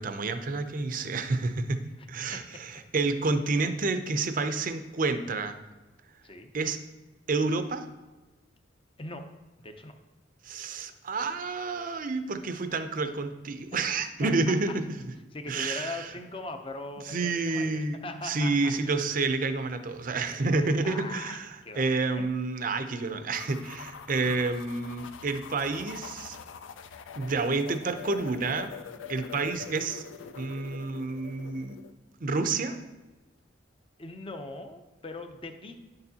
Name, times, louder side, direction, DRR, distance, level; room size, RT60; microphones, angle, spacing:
voice 1, 0.0-5.6 6.5-6.8 7.3-7.8 10.4-14.8 15.5-16.1 17.1-26.4 27.2-28.7 29.1-30.0 30.4-31.8 32.2-32.8, right 3 dB, 45° right, 9 dB, 0.5 m, -29 dB
voice 2, 2.0-2.4 6.2-6.5 9.0-9.3 9.6-9.9 13.7-13.9 14.2-14.3 15.3-18.5 20.6-21.4 21.7-21.9 22.2-22.3 29.3-29.8 34.0-35.8, left 2 dB, 30° left, 6 dB, 0.6 m, -40 dB
sound 1, 23.3-31.9, left 6 dB, 75° left, 0.4 m, -44 dB
10.0 x 6.7 x 2.8 m, 1.2 s
head